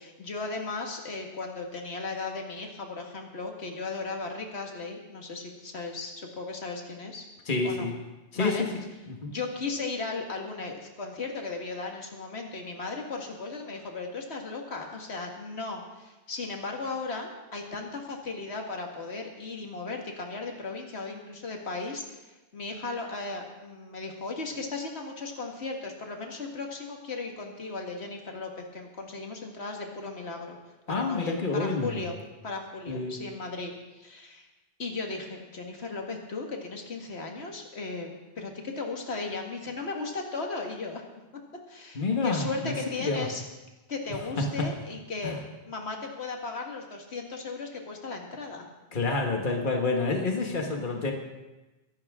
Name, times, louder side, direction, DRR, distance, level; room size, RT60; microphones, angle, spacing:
voice 1, 0.0-7.3 7.6-7.9 8.4-8.6 9.3-30.6 30.9-32.2 32.4-34.5 34.8-41.0 41.7-43.4 43.9-45.4 45.7-48.6, left 3 dB, 85° left, 2 dB, 2.0 m, -36 dB
voice 2, 7.4-7.9 8.3-9.3 30.9-32.0 32.9-33.2 41.9-43.3 44.4-44.7 45.2-45.4 48.9-51.1, left 3 dB, 50° left, 2 dB, 1.7 m, -28 dB
22.5 x 11.5 x 3.7 m, 1.1 s
omnidirectional pair, 1.1 m